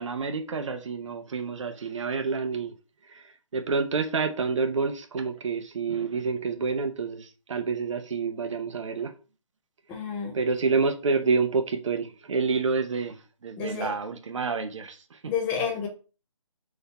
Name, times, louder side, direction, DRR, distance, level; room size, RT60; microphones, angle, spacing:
voice 1, 0.0-2.7 3.1-3.2 3.5-9.1 10.3-15.3, right 4 dB, 60° right, 0.7 m, -28 dB
voice 2, 9.9-10.3 13.6-13.9 15.3-15.9, left 6 dB, 10° left, 0.5 m, -29 dB
4.0 x 2.7 x 4.1 m
hypercardioid pair, 160°, 18 cm